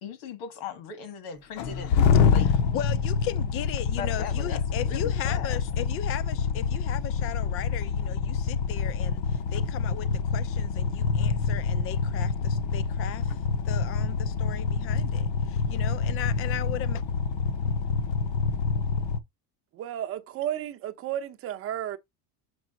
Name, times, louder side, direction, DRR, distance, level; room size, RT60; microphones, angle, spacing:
voice 1, 0.0-2.5 4.0-5.6, left 6 dB, 80° left, 1.9 m, -39 dB
sound 1, 1.6-19.2, left 6 dB, 60° left, 0.9 m, -26 dB
voice 2, 2.7-13.4 13.6-17.0 17.7-17.8, left 12 dB, 35° left, 0.4 m, -37 dB
voice 3, 19.7-22.0, right 11 dB, 35° right, 0.7 m, -33 dB
6.2 x 5.0 x 3.8 m
cardioid pair, 165°, 41 cm